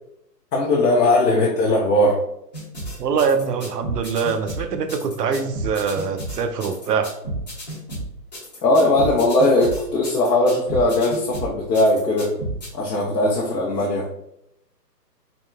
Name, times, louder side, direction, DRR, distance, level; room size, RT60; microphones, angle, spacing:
voice 1, 0.5-2.2 8.6-12.3 12.7-14.0, left 1 dB, 75° left, -3 dB, 0.7 m, -19 dB
sound 1, 2.5-12.7, right 1 dB, 25° left, 0.8 m, -32 dB
voice 2, 3.0-7.1, right 6 dB, 70° right, 8 dB, 0.5 m, -23 dB
3.6 x 2.1 x 2.2 m, 0.79 s
hypercardioid pair, 180°, 49 cm